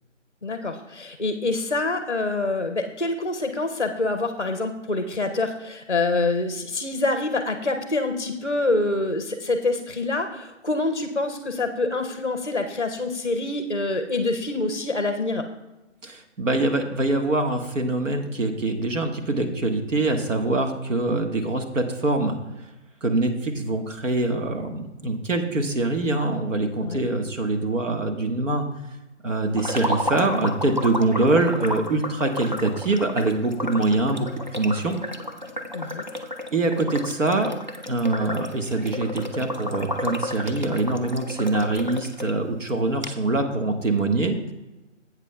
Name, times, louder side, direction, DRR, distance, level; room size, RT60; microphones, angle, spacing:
voice 1, 0.4-15.4 26.8-27.1 35.7-36.1, left 2 dB, 40° left, 7 dB, 0.5 m, -26 dB
voice 2, 16.0-22.4 23.0-28.6 29.2-35.0 36.5-37.5 37.9-44.5, right 2 dB, 85° right, 4 dB, 1.4 m, -24 dB
sound 1, 29.6-42.3 42.7-42.8 43.0-43.1, left 1 dB, 40° right, 0.4 m, -32 dB
12.5 x 8.2 x 2.2 m, 1.1 s
hypercardioid pair, 180°, 37 cm